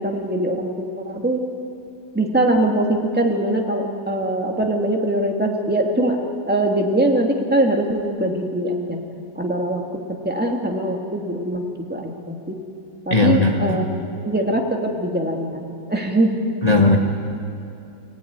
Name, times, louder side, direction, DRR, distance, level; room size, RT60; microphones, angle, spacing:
voice 1, 0.0-1.4 2.1-6.2 6.5-9.0 9.4-12.6 13.0-13.8 14.2-16.4, right 1 dB, 5° right, 1 dB, 2.2 m, -22 dB
voice 2, 13.1-13.9 16.6-17.0, left 2 dB, 25° left, 0 dB, 1.6 m, -17 dB
29.0 x 17.5 x 9.6 m, 2.6 s
omnidirectional pair, 1.8 m